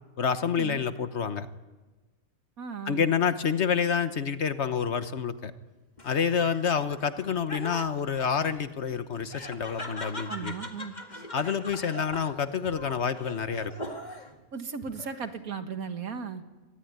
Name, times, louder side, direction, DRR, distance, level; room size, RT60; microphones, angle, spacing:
voice 1, 0.2-1.5 2.9-5.5 6.0-10.5 11.3-13.7, left 6 dB, 55° left, 11 dB, 1.3 m, -28 dB
voice 2, 2.6-3.1 10.3-10.9 14.5-16.4, right 5 dB, 85° right, 8 dB, 2.1 m, -36 dB
Laughter, 6.0-14.4 14.8-15.5, left 1 dB, 30° left, 2.0 m, -42 dB
24.5 x 19.0 x 9.5 m, 1.2 s
omnidirectional pair, 1.5 m